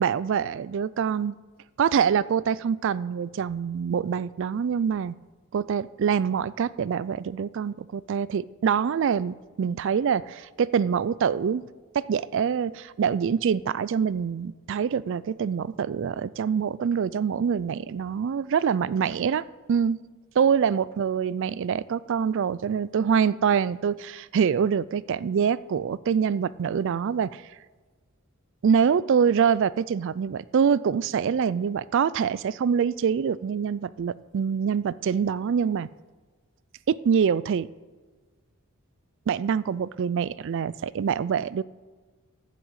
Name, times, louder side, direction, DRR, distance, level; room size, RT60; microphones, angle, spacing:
voice 1, 0.0-1.3 1.8-5.2 5.5-11.6 11.9-19.4 19.7-20.0 20.4-27.4 28.6-35.9 36.9-37.7 39.3-41.6, right 7 dB, 55° right, 19 dB, 0.3 m, -25 dB
11.0 x 7.6 x 8.0 m, 1.3 s
head